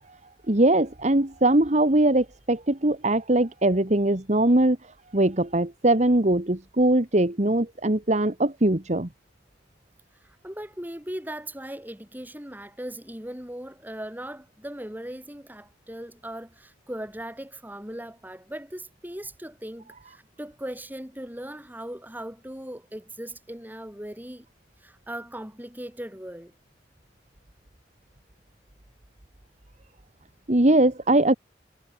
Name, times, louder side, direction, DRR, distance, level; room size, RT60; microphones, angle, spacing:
voice 1, 0.5-4.8 5.1-9.1 30.5-31.3, right 1 dB, 40° right, 1.8 m, -21 dB
voice 2, 10.2-24.5 24.8-26.5, right 1 dB, 10° right, 5.9 m, -38 dB
head